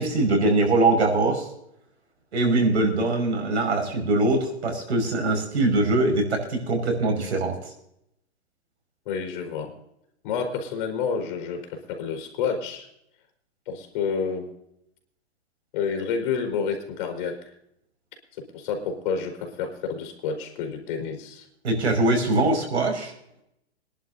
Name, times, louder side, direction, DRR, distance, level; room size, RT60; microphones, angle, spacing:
voice 1, 0.0-1.5 2.3-7.6 21.6-23.1, right 2 dB, 85° right, 3 dB, 5.6 m, -22 dB
voice 2, 9.0-9.7 10.2-12.9 13.7-14.5 15.7-17.4 18.4-21.4, left 6 dB, 50° left, 5 dB, 4.5 m, -29 dB
26.5 x 11.0 x 2.7 m, 0.78 s
hypercardioid pair, 135°, 33 cm